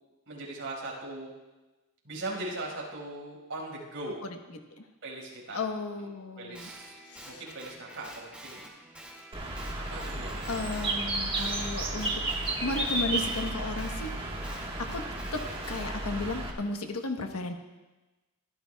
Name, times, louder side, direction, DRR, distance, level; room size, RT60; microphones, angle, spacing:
voice 1, 0.3-1.3 2.0-4.2 5.0-5.7 6.4-6.9 7.3-8.7 9.7-10.7, right 2 dB, 65° right, -2 dB, 5.2 m, -39 dB
voice 2, 5.5-6.7 7.1-7.4 10.5-12.2 12.6-14.1 14.8-15.0 15.3-17.5, left 2 dB, 75° left, 5 dB, 1.2 m, -34 dB
Guitar, 6.5-11.0 11.3-15.9, right 1 dB, 5° right, 2.2 m, -48 dB
Bird, 9.3-16.5, right 2 dB, 25° right, 1.5 m, -33 dB
23.5 x 14.0 x 2.3 m, 1.2 s
head